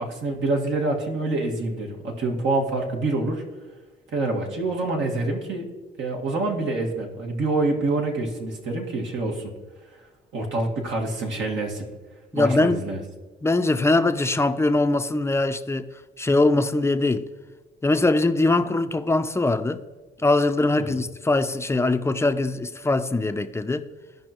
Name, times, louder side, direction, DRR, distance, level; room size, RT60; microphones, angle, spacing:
voice 1, 0.0-3.4 4.1-5.7 6.0-9.5 10.3-11.9 12.3-13.0 20.8-20.9, right 2 dB, 70° right, 1.9 m, -26 dB
voice 2, 12.3-12.8 13.4-15.9 16.2-17.3 17.8-19.8 20.2-23.8, left 2 dB, 15° left, 0.5 m, -22 dB
16.0 x 5.4 x 3.0 m
cardioid pair, 90°, 20 cm